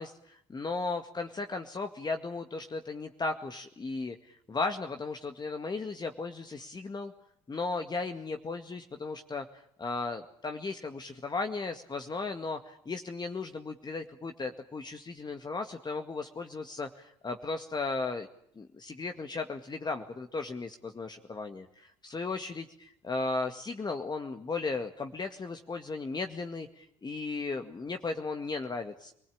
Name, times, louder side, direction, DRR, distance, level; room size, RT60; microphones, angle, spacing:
voice 1, 0.0-7.1 7.5-18.3 18.6-29.1, left 3 dB, 30° left, 5 dB, 2.0 m, -36 dB
27.0 x 20.5 x 8.8 m, 0.68 s
hypercardioid pair, 60°, 14 cm